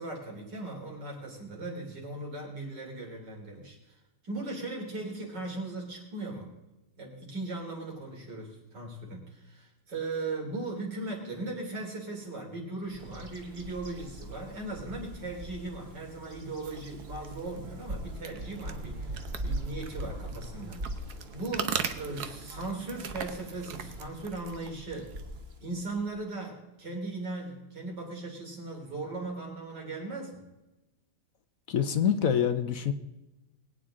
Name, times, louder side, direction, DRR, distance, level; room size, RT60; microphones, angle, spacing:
voice 1, 0.0-4.0 4.2-6.5 7.0-20.8 21.1-25.1 25.6-30.5, right 2 dB, 90° right, 0 dB, 4.0 m, -38 dB
Bird vocalization bird call bird song, 12.9-26.2, right 1 dB, 40° right, 1.5 m, -42 dB
sound 1, 16.6-25.5, right 7 dB, 70° right, 1.4 m, -40 dB
voice 2, 31.7-32.9, left 8 dB, 60° left, 9 dB, 1.2 m, -26 dB
21.5 x 9.3 x 3.7 m, 1.0 s
omnidirectional pair, 1.8 m